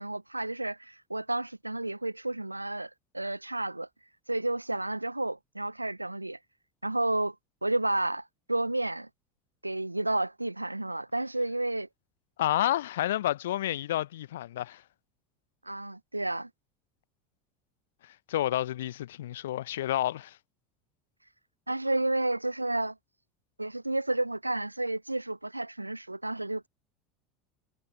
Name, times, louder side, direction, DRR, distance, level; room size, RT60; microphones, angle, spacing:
voice 1, 0.0-3.9 4.3-6.4 6.8-7.3 7.6-9.1 9.6-11.9 15.6-16.5 21.7-23.0 23.6-26.7, right 2 dB, 90° right, 0.7 m, -31 dB
voice 2, 12.4-14.8 18.3-20.4, left 13 dB, 65° left, 0.6 m, -30 dB
figure-of-eight pair, 75°, 0 cm